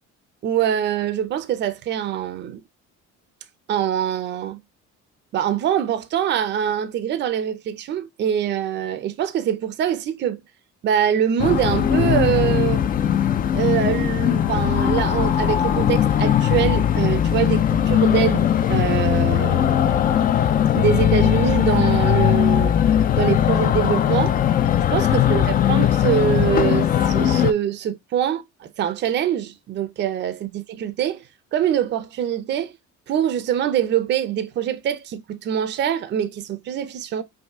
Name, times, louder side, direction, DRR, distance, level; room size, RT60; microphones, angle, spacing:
voice 1, 0.4-2.6 3.7-4.6 5.3-10.4 10.8-12.9 13.5-20.3 20.7-22.8 23.2-24.4 24.9-31.3 31.5-32.7 33.1-37.2, right 9 dB, 35° right, 0.5 m, -24 dB
sound 1, 11.4-27.5, left 10 dB, 30° left, 0.4 m, -19 dB
5.5 x 2.6 x 3.5 m
cardioid pair, 170°, 31 cm